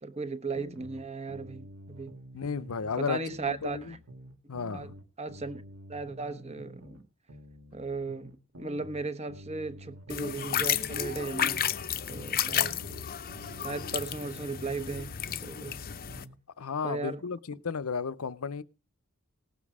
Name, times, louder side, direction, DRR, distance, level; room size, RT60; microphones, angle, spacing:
voice 1, 0.0-2.2 3.0-4.0 4.7-4.9 5.2-5.6 5.9-7.0 7.7-11.7 12.1-12.8 13.6-15.8 16.8-17.2, right 3 dB, 30° right, 1.1 m, -36 dB
sound 1, 0.5-3.0 3.3-7.0 7.3-11.0 11.3-15.0 15.3-16.4, equal, 70° right, 1.8 m, -49 dB
voice 2, 2.3-3.2 3.5-3.9 4.5-4.9 16.6-18.6, left 5 dB, 75° left, 0.7 m, -33 dB
sound 2, 10.1-16.2, left 9 dB, 45° left, 0.7 m, -32 dB
18.5 x 7.4 x 4.9 m
head